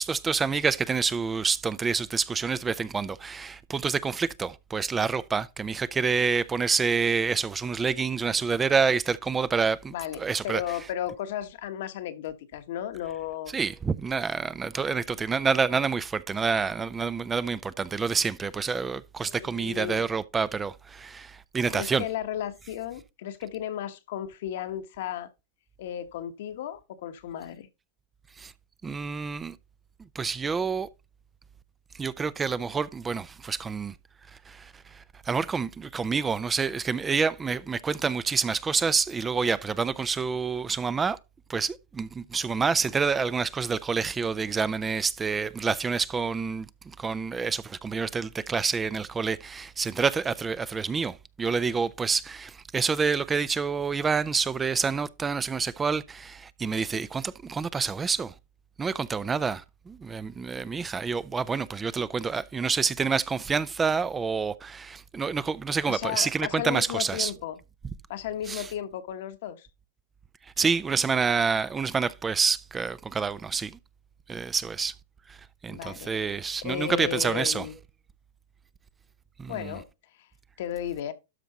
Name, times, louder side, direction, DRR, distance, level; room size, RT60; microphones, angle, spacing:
voice 1, 0.0-10.6 13.5-22.0 28.4-28.5 28.8-29.6 30.1-30.9 31.9-33.9 34.5-41.2 41.5-58.3 58.8-67.3 68.5-68.7 70.6-73.8 74.3-74.9 75.3-75.4 75.6-77.7 79.4-79.7, right 5 dB, 15° right, 0.5 m, -28 dB
voice 2, 9.9-13.5 14.9-15.0 19.2-20.0 21.7-25.3 25.8-27.7 65.9-67.6 68.1-69.7 75.7-76.1 76.6-77.7 79.5-79.9 80.6-81.1, left 11 dB, 70° left, 1.3 m, -34 dB
12.5 x 4.5 x 3.9 m
supercardioid pair, 135°, 0 cm